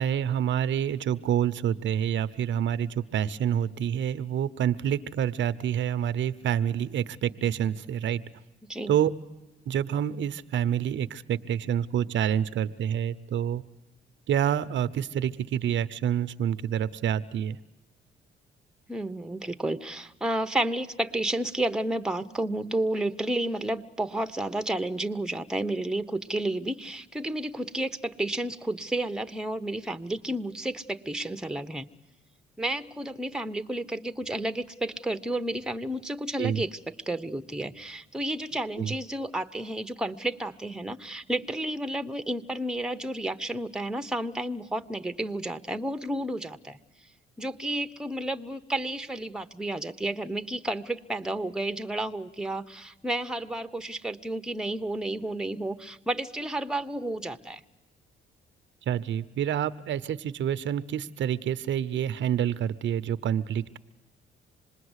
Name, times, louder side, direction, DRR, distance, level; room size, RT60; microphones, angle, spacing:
voice 1, 0.0-8.2 8.9-9.1 9.7-13.6 14.3-17.6 36.4-36.6 38.8-38.9 58.9-63.8, right 9 dB, 70° right, 14 dB, 0.8 m, -27 dB
voice 2, 8.6-8.9 18.9-31.9 32.6-46.8 47.4-57.6, right 1 dB, 5° right, 9 dB, 1.0 m, -31 dB
26.5 x 20.5 x 8.1 m, 1.1 s
cardioid pair, 90°, 20 cm